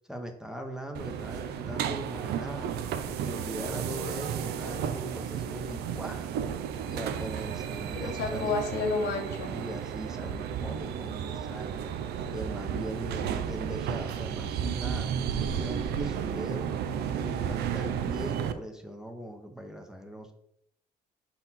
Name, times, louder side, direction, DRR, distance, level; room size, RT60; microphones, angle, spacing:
voice 1, 0.1-2.7 3.1-6.3 6.8-8.6 9.5-11.9 12.3-16.7 17.1-20.3, right 1 dB, 5° right, 4 dB, 0.8 m, -40 dB
sound 1, 0.9-18.5, right 8 dB, 75° right, 0.5 m, -33 dB
voice 2, 7.9-9.5, left 4 dB, 80° left, 3 dB, 1.2 m, -30 dB
5.5 x 4.1 x 4.1 m, 0.77 s
cardioid pair, 110°, 17 cm